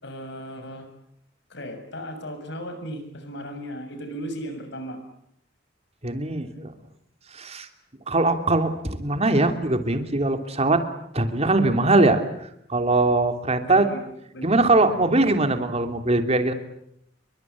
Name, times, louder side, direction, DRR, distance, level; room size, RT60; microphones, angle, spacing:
voice 1, 0.0-0.9 1.5-5.0 13.6-14.0 14.3-15.0, equal, 65° left, 7 dB, 7.0 m, -36 dB
voice 2, 6.0-6.7 7.3-7.7 8.1-10.8 11.1-12.2 12.7-13.9 14.4-16.5, right 2 dB, 35° right, 7 dB, 3.1 m, -21 dB
29.0 x 23.5 x 8.6 m, 0.76 s
head